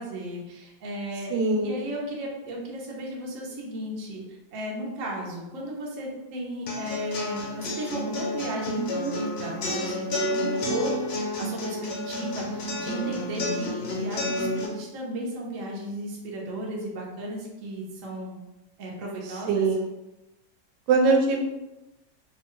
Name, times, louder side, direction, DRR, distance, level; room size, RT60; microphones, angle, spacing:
voice 1, 0.0-18.4 18.8-19.7, right 1 dB, 60° right, -2 dB, 0.9 m, -35 dB
voice 2, 1.3-1.8 19.5-19.9 20.9-21.4, right 3 dB, 80° right, 2 dB, 1.2 m, -22 dB
sound 1, 6.7-14.7, left 1 dB, 75° left, 1.3 m, -30 dB
3.1 x 2.2 x 2.9 m, 0.99 s
omnidirectional pair, 1.9 m